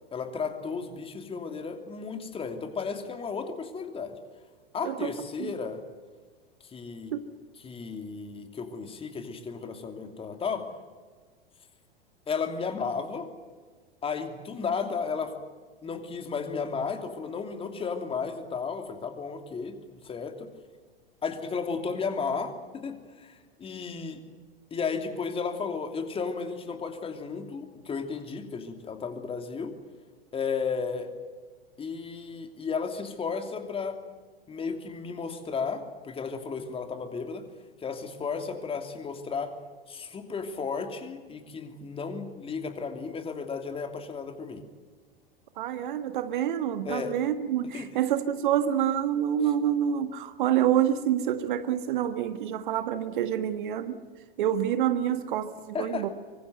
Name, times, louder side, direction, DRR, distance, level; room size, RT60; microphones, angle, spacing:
voice 1, 0.1-4.2 4.7-5.8 6.6-7.1 7.6-10.7 12.3-13.3 14.0-15.3 15.8-20.5 21.2-24.2 24.7-29.7 30.3-31.1 31.8-34.0 34.5-37.4 37.8-39.5 39.9-44.6 46.8-47.2 47.7-47.9 55.7-56.1, left 5 dB, 20° left, 2.9 m, -34 dB
voice 2, 45.6-54.0 54.4-56.1, right 10 dB, 55° right, 1.6 m, -27 dB
24.5 x 24.5 x 8.0 m
figure-of-eight pair, 95°, 30 cm